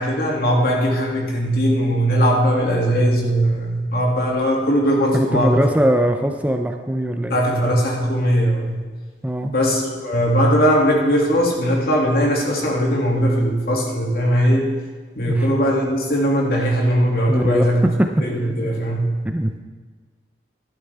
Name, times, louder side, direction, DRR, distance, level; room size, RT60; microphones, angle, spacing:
voice 1, 0.0-5.6 7.3-8.8 9.5-14.7 15.1-17.8 18.2-19.1, equal, 60° left, -2 dB, 2.3 m, -19 dB
voice 2, 5.1-7.4 9.2-9.5 15.3-15.5 17.3-17.7 18.0-18.3 19.2-19.6, right 1 dB, 10° right, 5 dB, 0.5 m, -21 dB
12.0 x 11.5 x 3.4 m, 1.4 s
head